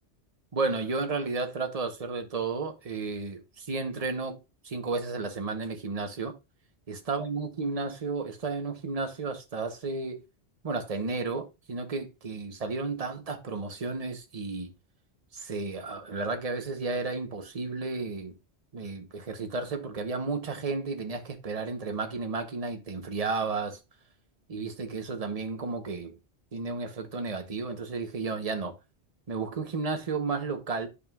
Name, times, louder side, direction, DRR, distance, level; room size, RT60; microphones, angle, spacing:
voice 1, 0.5-4.4 4.6-6.3 6.9-10.2 10.6-14.7 15.3-18.3 18.7-23.8 24.5-26.2 26.5-28.7 29.3-30.9, right 4 dB, 35° right, 1.0 m, -33 dB
10.0 x 5.4 x 2.4 m
omnidirectional pair, 1.2 m